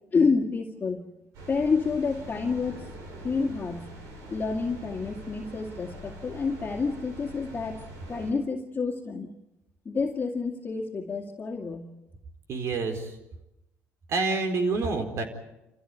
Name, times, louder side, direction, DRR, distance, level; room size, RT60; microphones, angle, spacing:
voice 1, 0.1-1.0 1.5-2.8 3.2-3.8 4.2-7.8 8.1-9.3 9.9-11.9, left 4 dB, 35° left, -1 dB, 2.3 m, -28 dB
sound 1, 1.3-8.3, equal, 80° right, 5.3 m, -43 dB
voice 2, 12.5-13.1 14.1-15.2, right 3 dB, 60° right, 6 dB, 4.4 m, -27 dB
28.0 x 15.5 x 9.3 m, 0.93 s
supercardioid pair, 80°, 5 cm